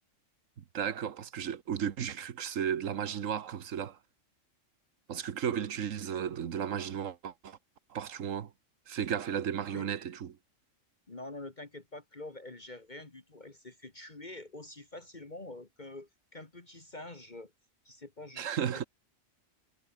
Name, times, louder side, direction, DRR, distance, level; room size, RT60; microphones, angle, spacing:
voice 1, 0.6-4.0 5.1-7.6 7.9-8.5 8.9-10.3 18.4-18.9, right 8 dB, 80° right, 1.4 m, -34 dB
voice 2, 11.1-17.5 17.9-18.5, left 2 dB, 35° left, 2.1 m, -46 dB
omnidirectional pair, 1.3 m